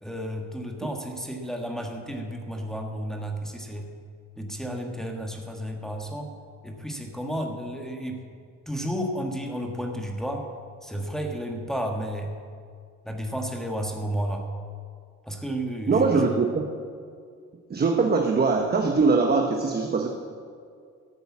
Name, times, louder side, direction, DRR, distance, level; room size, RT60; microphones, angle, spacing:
voice 1, 0.0-3.9 4.4-6.3 6.6-8.3 8.7-10.5 10.8-12.3 13.0-14.5 15.2-16.3, equal, ahead, 2 dB, 1.5 m, -32 dB
voice 2, 15.9-16.6 17.7-20.1, right 4 dB, 30° right, 3 dB, 1.1 m, -22 dB
13.0 x 8.0 x 7.3 m, 2.2 s
cardioid pair, 90°, 30 cm